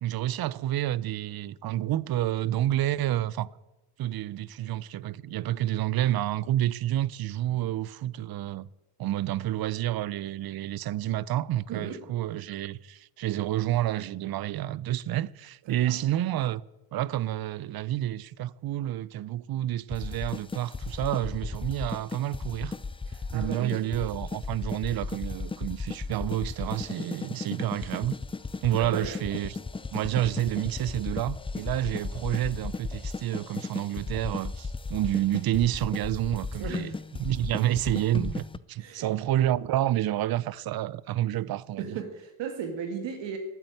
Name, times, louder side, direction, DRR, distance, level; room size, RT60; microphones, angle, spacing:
voice 1, 0.0-3.5 4.0-8.7 9.0-16.6 16.9-22.8 23.3-28.2 28.6-29.6 29.9-36.9 37.2-42.0, right 13 dB, 55° right, 0.7 m, -29 dB
voice 2, 11.7-12.0 15.7-15.9 23.1-23.8 28.8-29.1 36.6-36.9 38.8-39.1 41.8-43.4, right 6 dB, 75° right, 2.0 m, -36 dB
sound 1, 19.9-38.6, left 4 dB, 15° left, 0.4 m, -36 dB
11.0 x 9.3 x 9.0 m
supercardioid pair, 80°, 44 cm